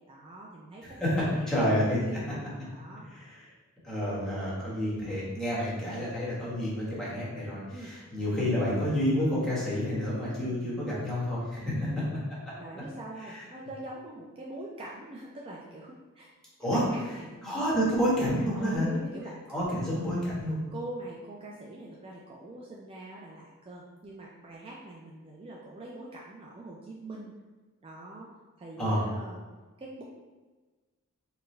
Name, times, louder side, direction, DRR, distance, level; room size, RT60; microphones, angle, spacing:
voice 1, 0.1-1.5 1.9-3.1 7.7-7.9 11.6-12.1 12.6-16.3 16.7-17.3 18.5-19.4 19.7-19.9 20.7-27.3 27.8-28.3 28.6-29.4 29.8-30.0, right 1 dB, 25° right, -4 dB, 0.4 m, -43 dB
voice 2, 1.5-2.0 3.1-3.4 3.8-11.7 13.3-13.4 16.6-16.8 17.4-18.9 19.5-20.6 28.8-29.0, equal, 5° left, -9 dB, 1.2 m, -29 dB
4.4 x 2.2 x 3.1 m, 1.3 s
head